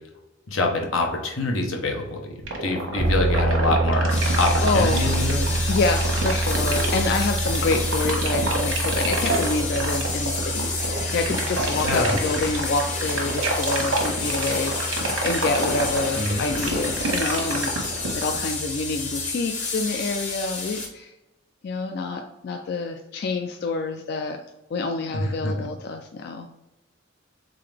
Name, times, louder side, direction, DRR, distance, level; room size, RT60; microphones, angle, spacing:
voice 1, 0.5-5.4 11.8-12.1 16.1-16.4 25.1-25.7, left 2 dB, 85° left, 1 dB, 0.9 m, -25 dB
sound 1, 2.4-18.4, right 3 dB, 85° right, 1.1 m, -27 dB
sound 2, 3.0-19.3, right 2 dB, 25° right, 0.5 m, -28 dB
sound 3, 4.1-20.9, left 4 dB, 35° left, 0.9 m, -30 dB
voice 2, 4.2-5.2 5.7-21.1 21.6-24.4 24.7-26.5, left 3 dB, 55° left, 4 dB, 0.3 m, -27 dB
3.8 x 3.8 x 3.3 m, 0.97 s
head